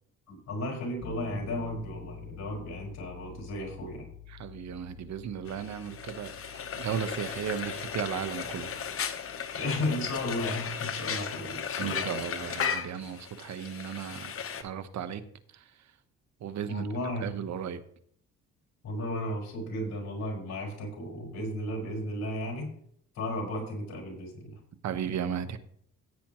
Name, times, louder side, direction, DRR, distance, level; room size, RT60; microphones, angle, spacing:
voice 1, 0.3-4.1 9.5-12.2 16.7-17.3 18.8-22.7 23.2-24.6, left 1 dB, 65° left, 5.2 m, -34 dB
Piano, 1.0-11.8, left 6 dB, 30° left, 2.2 m, -49 dB
voice 2, 4.3-8.8 11.8-14.3 14.6-15.2 15.5-16.0 16.4-16.9 17.2-17.8 24.8-25.6, right 8 dB, 65° right, 1.1 m, -35 dB
Frying (food), 5.5-14.6, left 7 dB, 45° left, 1.1 m, -36 dB
15.0 x 8.5 x 3.1 m
cardioid pair, 90°, 30 cm